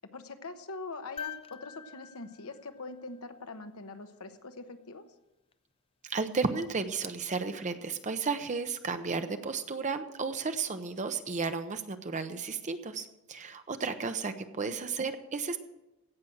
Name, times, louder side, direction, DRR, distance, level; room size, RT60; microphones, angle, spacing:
voice 1, 0.1-5.0 14.6-14.8, left 3 dB, 75° left, 8 dB, 1.0 m, -43 dB
sound 1, 1.2-3.5 5.5-5.6, left 8 dB, 25° left, 0.4 m, -45 dB
voice 2, 6.0-15.6, right 4 dB, 35° right, 8 dB, 0.7 m, -33 dB
16.5 x 6.1 x 7.7 m, 0.97 s
head